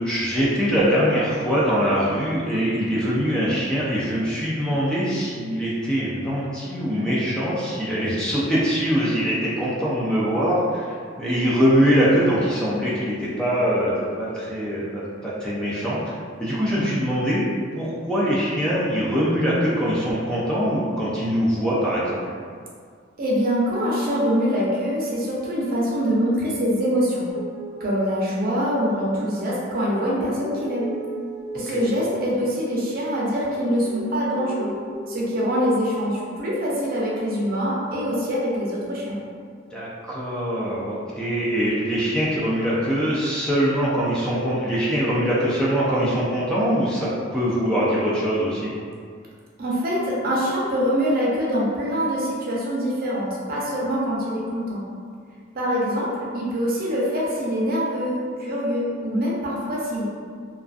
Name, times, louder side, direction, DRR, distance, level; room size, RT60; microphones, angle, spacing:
voice 1, 0.0-16.1 16.4-17.4 17.7-22.2 31.7-31.8 39.7-48.7, equal, 5° left, -8 dB, 0.3 m, -23 dB
voice 2, 23.2-27.2 27.8-30.9 31.5-34.7 35.1-39.1 49.6-54.8 55.5-56.1 56.3-60.0, equal, 50° right, -5 dB, 0.6 m, -24 dB
sound 1, 27.3-29.0 29.8-32.4 33.3-35.9 37.0-37.6, right 1 dB, 60° left, 1.5 m, -38 dB
2.4 x 2.3 x 2.3 m, 2.1 s
head